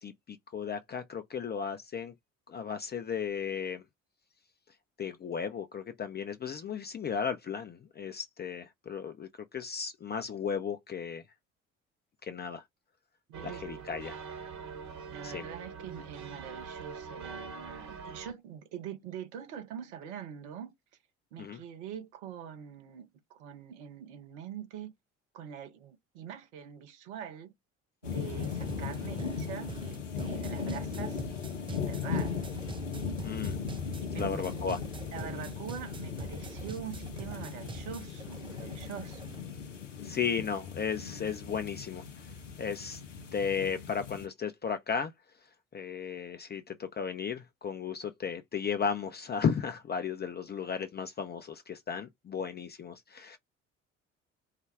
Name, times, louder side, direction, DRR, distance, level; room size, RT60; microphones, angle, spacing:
voice 1, 0.0-2.1 2.5-3.8 5.0-11.2 12.2-12.6 13.4-14.2 15.2-15.5 21.4-21.6 33.2-33.6 34.2-34.8 40.0-42.0 42.6-43.0 43.3-45.1 45.7-53.4, left 6 dB, 25° left, 0.7 m, -35 dB
sound 1, 13.3-18.3, right 5 dB, 50° right, 1.4 m, -43 dB
voice 2, 13.3-13.9 15.1-20.7 21.3-24.9 25.3-27.5 28.0-31.2 31.7-32.4 34.1-34.4 35.1-39.4, right 8 dB, 70° right, 0.9 m, -44 dB
sound 2, 28.0-44.3, left 6 dB, 85° left, 0.6 m, -38 dB
sound 3, 28.3-39.4, right 5 dB, 15° right, 0.5 m, -46 dB
4.7 x 2.2 x 3.4 m
figure-of-eight pair, 55°, 36 cm